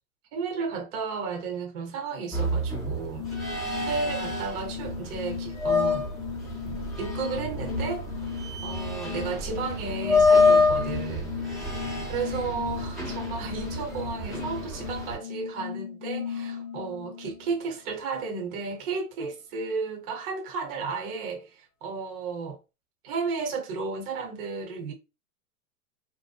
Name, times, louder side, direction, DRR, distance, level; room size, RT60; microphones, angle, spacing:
voice 1, 0.3-3.3 3.9-6.0 7.0-8.0 8.6-11.7 12.0-22.6 23.0-24.9, right 4 dB, 40° right, 0.8 m, -33 dB
sound 1, 2.3-15.1, left 3 dB, ahead, 0.6 m, -27 dB
sound 2, 3.2-17.6, left 8 dB, 85° left, 0.6 m, -37 dB
2.7 x 2.1 x 2.2 m
hypercardioid pair, 135°, 44 cm